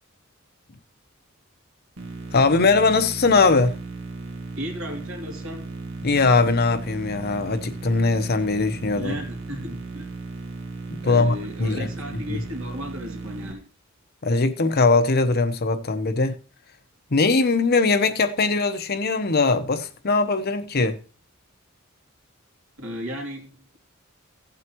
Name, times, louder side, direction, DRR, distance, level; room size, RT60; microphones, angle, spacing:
sound 1, 2.0-13.5, right 3 dB, 90° right, 1.7 m, -36 dB
voice 1, 2.3-3.8 6.0-9.1 10.9-11.9 12.3-12.4 14.2-16.4 17.1-21.0, left 3 dB, 50° left, 0.8 m, -21 dB
voice 2, 4.6-5.7 9.0-10.1 11.0-13.7 22.8-23.6, equal, 70° right, 2.6 m, -35 dB
16.0 x 7.8 x 3.0 m
head